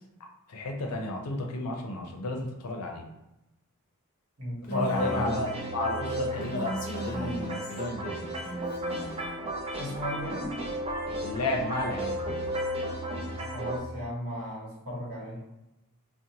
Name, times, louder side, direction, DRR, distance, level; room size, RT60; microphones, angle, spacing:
voice 1, 0.5-3.0 4.7-6.8 7.0-8.3 11.2-12.2, left 2 dB, 85° left, 2 dB, 0.5 m, -32 dB
voice 2, 4.4-5.4 9.8-10.6 13.5-15.4, equal, 65° right, -5 dB, 1.0 m, -35 dB
Female speech woman speaking, 4.6-5.3 6.4-7.9 8.4-9.3, equal, 35° left, 0.5 m, -37 dB
sound 1, 4.9-13.8, right 1 dB, 25° right, 0.5 m, -34 dB
2.8 x 2.1 x 2.7 m, 0.95 s
head